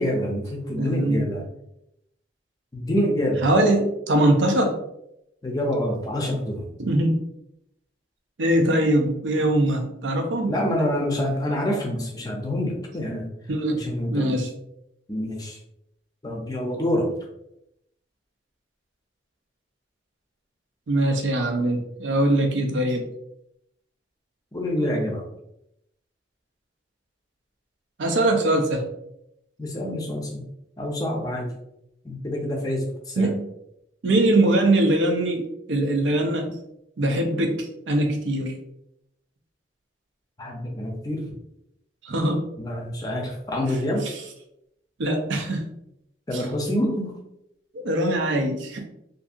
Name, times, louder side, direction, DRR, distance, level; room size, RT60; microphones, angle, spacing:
voice 1, 0.0-1.4 2.7-3.5 5.4-6.7 10.5-13.3 13.7-14.4 15.1-15.6 16.2-17.1 24.5-25.2 29.6-30.4 30.8-31.5 32.0-33.3 40.4-41.2 42.6-44.1 46.3-47.1, equal, 20° left, 0 dB, 0.5 m, -26 dB
voice 2, 0.8-1.3 3.4-4.8 6.8-7.2 8.4-10.6 13.5-14.5 20.9-23.1 28.0-28.8 33.2-33.4 34.0-36.6 37.0-38.5 42.0-42.4 44.0-44.2 45.0-45.6 46.3-46.5 47.7-48.9, right 1 dB, 90° right, 3 dB, 0.5 m, -22 dB
2.6 x 2.6 x 2.4 m, 0.80 s
head